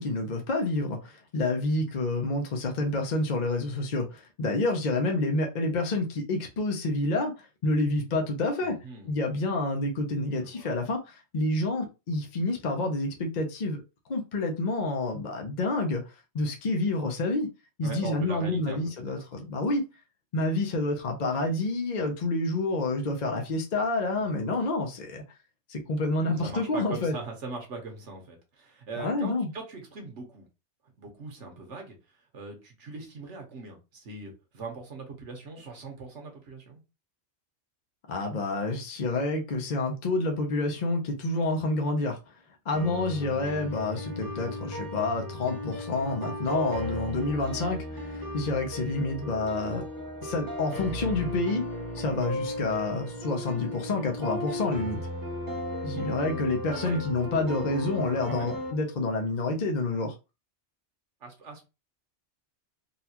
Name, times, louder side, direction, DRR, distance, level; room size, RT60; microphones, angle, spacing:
voice 1, 0.0-8.8 9.1-13.8 14.1-16.0 16.3-17.5 17.8-19.8 20.3-25.2 25.7-27.1 29.0-29.5 38.1-42.2 42.7-49.8 50.2-51.7 51.9-55.0 55.8-60.1, left 2 dB, 45° left, 0.7 m, -28 dB
voice 2, 8.6-9.1 10.3-10.7 17.8-19.3 26.4-30.4 31.0-36.8 56.7-57.0 58.3-58.5 61.2-61.7, right 3 dB, 90° right, 1.4 m, -41 dB
sound 1, 42.7-58.7, left 1 dB, 30° right, 0.4 m, -36 dB
Wind instrument woodwind instrument, 49.1-59.2, right 4 dB, 85° left, 1.7 m, -51 dB
3.9 x 2.3 x 2.8 m
omnidirectional pair, 1.2 m